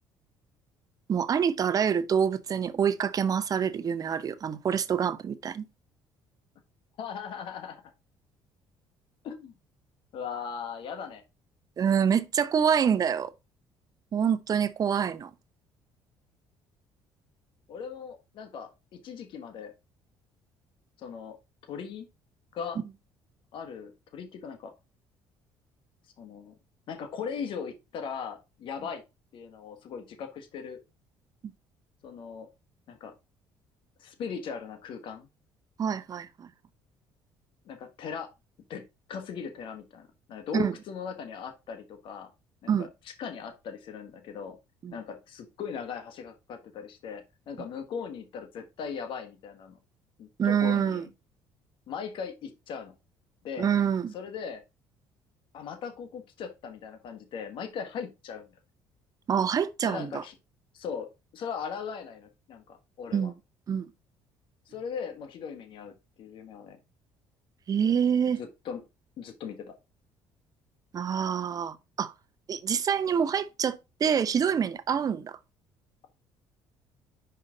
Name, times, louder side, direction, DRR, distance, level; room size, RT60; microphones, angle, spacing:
voice 1, 1.1-5.7 11.8-13.3 14.1-15.3 35.8-36.5 40.5-40.7 42.7-42.9 44.8-45.0 50.4-51.0 53.6-54.1 59.3-60.2 63.1-63.3 63.7-63.9 67.7-68.4 70.9-72.1 72.5-75.4, right 7 dB, 40° right, 0.7 m, -26 dB
voice 2, 7.0-7.8 9.2-9.5 10.1-11.2 17.7-19.7 21.0-21.4 21.7-22.1 22.5-22.8 23.5-24.7 26.2-26.6 26.9-29.0 29.3-30.8 32.0-32.5 32.9-33.1 34.0-35.3 37.6-38.3 38.7-38.8 39.1-42.3 42.6-42.9 43.2-44.6 44.9-49.8 50.2-51.1 51.9-52.9 53.4-53.7 54.1-54.6 55.5-58.5 59.8-60.3 60.7-61.1 61.3-63.3 64.7-66.8 68.4-68.8 69.2-69.8, left 6 dB, 65° left, 1.4 m, -39 dB
5.6 x 5.1 x 3.8 m
cardioid pair, 95°, 9 cm